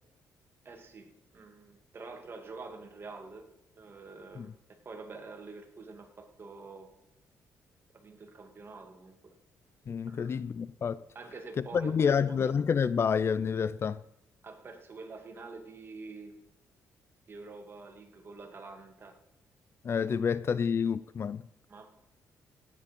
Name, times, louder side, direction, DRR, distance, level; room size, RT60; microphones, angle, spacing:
voice 1, 0.6-3.5 3.8-6.9 7.9-9.3 10.1-10.3 11.1-12.6 14.4-16.4 17.3-19.2 21.7-21.9, right 3 dB, 40° right, 2.2 m, -47 dB
voice 2, 9.9-11.0 11.7-14.0 19.8-21.4, left 6 dB, 45° left, 0.4 m, -28 dB
17.0 x 8.3 x 5.3 m
cardioid pair, 95°, 6 cm